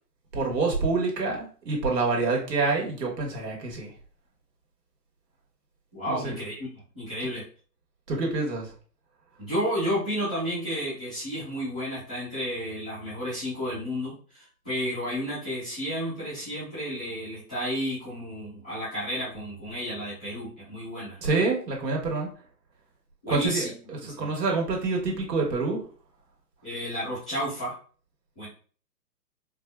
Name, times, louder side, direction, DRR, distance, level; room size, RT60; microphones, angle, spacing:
voice 1, 0.3-3.9 6.1-6.3 8.1-8.7 21.2-22.3 23.3-25.8, right 3 dB, 85° right, 0 dB, 1.3 m, -27 dB
voice 2, 5.9-6.7 6.9-7.4 9.4-21.2 23.2-24.3 26.6-27.7 28.4-28.5, equal, 5° left, -14 dB, 0.4 m, -32 dB
4.2 x 2.3 x 2.2 m, 0.42 s
hypercardioid pair, 150°, 48 cm